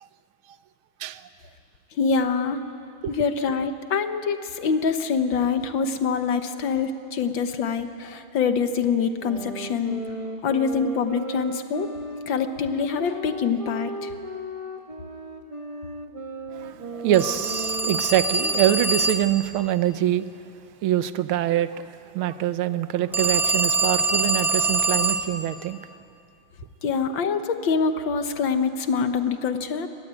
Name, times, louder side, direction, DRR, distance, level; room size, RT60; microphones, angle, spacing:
voice 1, 2.0-2.6 3.1-10.0 10.4-11.9 12.3-14.1 26.8-29.9, left 5 dB, 65° left, 9 dB, 1.7 m, -25 dB
sound 1, 9.2-19.2, right 1 dB, 20° right, 1.0 m, -36 dB
voice 2, 16.5-20.3 20.8-25.8, right 12 dB, 80° right, 13 dB, 1.6 m, -24 dB
Telephone, 17.1-19.4 23.1-25.3, right 2 dB, ahead, 0.4 m, -24 dB
23.5 x 20.0 x 8.9 m, 2.5 s
omnidirectional pair, 2.3 m